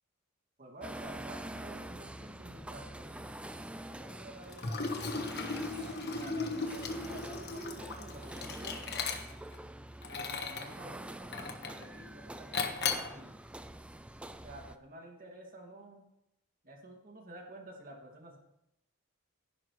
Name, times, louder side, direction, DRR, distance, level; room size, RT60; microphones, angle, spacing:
voice 1, 0.6-3.5 3.9-9.0 10.0-13.3 14.4-16.1 16.6-18.4, right 1 dB, 40° right, 0 dB, 2.3 m, -51 dB
sound 1, 0.8-14.8, right 1 dB, 5° right, 0.3 m, -46 dB
Liquid, 4.5-9.6 10.0-10.7 11.3-11.8 12.5-13.1, left 4 dB, 45° left, 1.3 m, -36 dB
17.0 x 11.0 x 3.2 m, 0.84 s
head